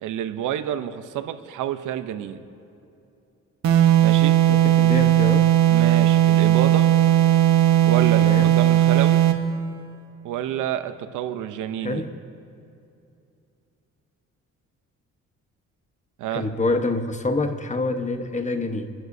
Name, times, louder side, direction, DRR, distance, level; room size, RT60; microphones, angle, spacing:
voice 1, 0.0-2.4 4.0-4.4 5.7-6.9 7.8-9.2 10.2-12.0 16.2-16.5, right 11 dB, 85° right, 10 dB, 0.8 m, -28 dB
sound 1, 3.6-9.5, right 13 dB, 65° right, 1.1 m, -17 dB
voice 2, 4.5-5.5 8.2-8.5 11.8-12.1 16.3-18.9, left 2 dB, 25° left, 7 dB, 1.1 m, -26 dB
28.5 x 11.0 x 2.7 m, 2.7 s
cardioid pair, 90°, 30 cm